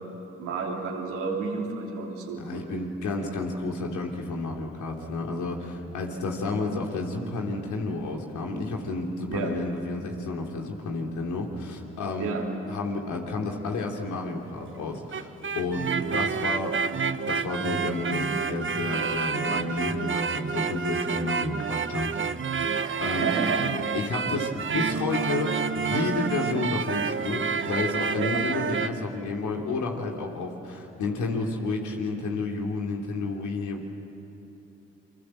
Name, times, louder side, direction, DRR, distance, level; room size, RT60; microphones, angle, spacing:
voice 1, 0.4-2.7 9.3-9.5 12.2-12.4 22.8-24.0 28.2-28.4, right 4 dB, 85° right, -1 dB, 3.2 m, -31 dB
voice 2, 2.4-12.3 12.7-16.8 17.3-22.3 22.6-23.3 23.9-33.9, left 3 dB, 75° left, 1 dB, 3.1 m, -31 dB
sound 1, 14.9-28.9, right 5 dB, 40° right, 1.1 m, -29 dB
28.0 x 24.0 x 7.7 m, 3.0 s
hypercardioid pair, 40°, 30 cm